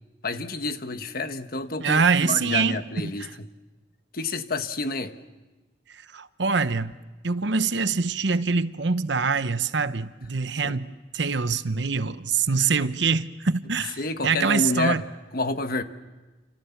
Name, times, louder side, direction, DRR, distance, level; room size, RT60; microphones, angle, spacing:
voice 1, 0.2-3.3 4.1-5.1 10.6-10.8 14.0-15.0 15.3-15.8, left 2 dB, 50° left, 1.3 m, -29 dB
voice 2, 1.8-2.8 3.2-3.3 6.1-6.9 7.2-10.9 11.1-14.0 14.2-15.0, right 5 dB, 70° right, 0.9 m, -24 dB
29.0 x 27.0 x 7.2 m
head